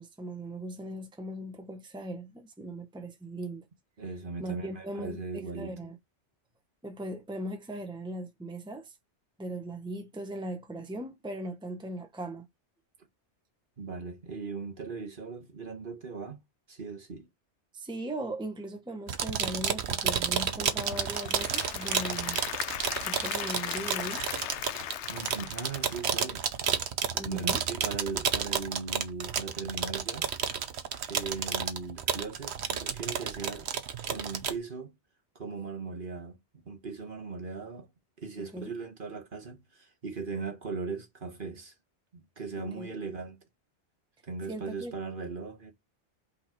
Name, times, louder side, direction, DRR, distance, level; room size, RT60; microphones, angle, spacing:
voice 1, 0.0-3.7 4.4-6.0 6.8-9.0 9.4-12.5 17.7-22.4 23.0-24.6 27.1-27.6 38.4-38.7 42.6-42.9 44.5-44.9, right 1 dB, 5° right, 1.0 m, -39 dB
voice 2, 4.0-5.7 13.8-16.4 16.7-17.3 25.1-26.5 27.2-30.3 31.1-33.7 34.0-34.9 35.3-36.4 36.6-37.9 38.2-41.7 42.1-43.4 44.2-45.7, right 4 dB, 50° right, 1.5 m, -38 dB
sound 1, 19.1-34.6, right 7 dB, 70° right, 1.0 m, -31 dB
Applause / Crowd, 20.5-26.6, left 11 dB, 80° left, 0.9 m, -38 dB
5.5 x 3.9 x 4.4 m
omnidirectional pair, 1.2 m